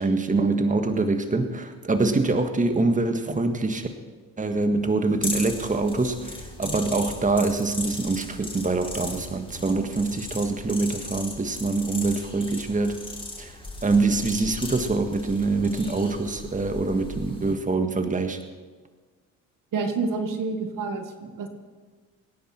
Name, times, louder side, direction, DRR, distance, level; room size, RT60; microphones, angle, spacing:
voice 1, 0.0-3.9 4.4-13.0 13.4-18.4, right 3 dB, 20° right, 7 dB, 1.6 m, -25 dB
sound 1, 5.2-17.5, left 2 dB, 15° left, 5.8 m, -37 dB
voice 2, 19.7-21.5, right 4 dB, 65° right, 6 dB, 2.0 m, -28 dB
26.0 x 10.0 x 4.4 m, 1.4 s
supercardioid pair, 60°, 36 cm